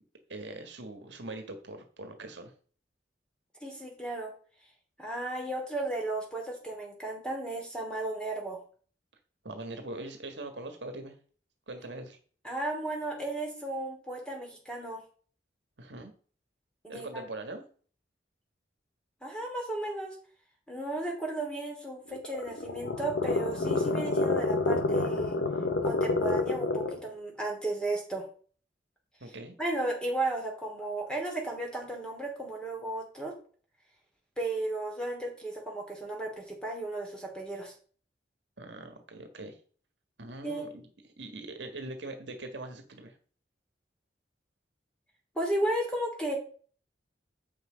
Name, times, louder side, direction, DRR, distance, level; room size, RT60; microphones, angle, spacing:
voice 1, 0.3-2.5 9.4-11.1 11.7-12.2 15.8-16.1 16.9-17.6 29.2-29.5 38.6-39.6 40.2-40.8 41.2-43.2, right 2 dB, 70° right, 6 dB, 1.6 m, -42 dB
voice 2, 3.6-4.3 5.0-8.6 12.4-15.0 16.8-17.2 19.2-20.1 20.7-25.4 25.8-28.3 29.6-33.3 34.4-37.7 40.4-40.7 45.3-46.4, right 2 dB, 5° left, 0 dB, 2.8 m, -34 dB
sound 1, 22.1-27.1, left 2 dB, 65° left, 0.9 m, -29 dB
7.6 x 5.9 x 5.1 m, 0.42 s
head